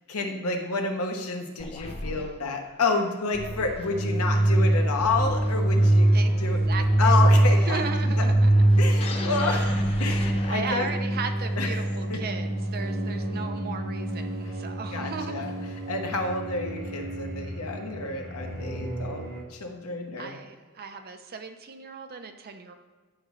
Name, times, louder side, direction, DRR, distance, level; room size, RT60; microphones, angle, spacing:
voice 1, 0.1-6.1 6.4-6.6 7.0-7.8 8.2-8.3 8.8-10.9 11.6-11.7 12.1-12.2 14.4-14.5 14.9-15.5 15.9-19.2 19.5-20.4, left 3 dB, 75° left, 3 dB, 1.0 m, -29 dB
sound 1, 1.6-11.0, left 2 dB, 25° left, 0.7 m, -40 dB
sound 2, 3.8-19.4, right 1 dB, 65° right, 1.7 m, -24 dB
voice 2, 6.1-8.7 9.4-9.8 10.5-15.5 20.2-22.7, right 5 dB, 45° right, 7 dB, 0.6 m, -37 dB
9.9 x 5.1 x 3.2 m, 1.3 s
head